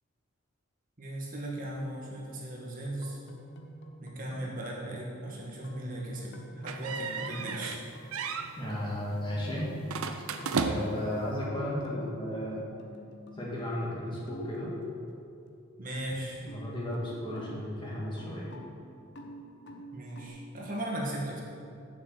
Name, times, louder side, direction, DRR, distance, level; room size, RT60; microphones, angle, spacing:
voice 1, 1.0-3.2 4.0-7.8 15.8-16.5 19.9-21.4, right 1 dB, 40° right, -3 dB, 1.4 m, -37 dB
sound 1, 2.8-12.4 12.8-13.9 14.3-15.5 16.4-20.3, equal, 55° left, 0.9 m, -49 dB
sound 2, 6.7-7.8 8.1-8.5 9.9-11.1, right 4 dB, 80° right, 0.6 m, -33 dB
voice 2, 8.6-9.7 10.6-12.7 13.3-14.7 16.4-18.5, left 1 dB, 25° left, -5 dB, 1.9 m, -34 dB
7.3 x 6.2 x 7.6 m, 2.5 s
head